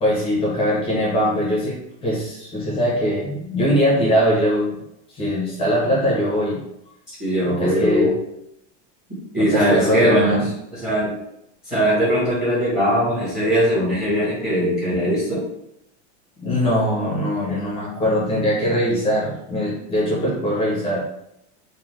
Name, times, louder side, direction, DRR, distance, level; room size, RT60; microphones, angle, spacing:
voice 1, 0.0-4.8 5.1-6.6 7.4-8.1 9.4-10.5 16.4-21.0, equal, 15° left, -5 dB, 0.6 m, -21 dB
voice 2, 7.2-8.1 9.3-10.5 10.7-11.1 11.7-15.4, equal, ahead, -7 dB, 1.2 m, -20 dB
2.6 x 2.1 x 3.2 m, 0.79 s
supercardioid pair, 165°, 35 cm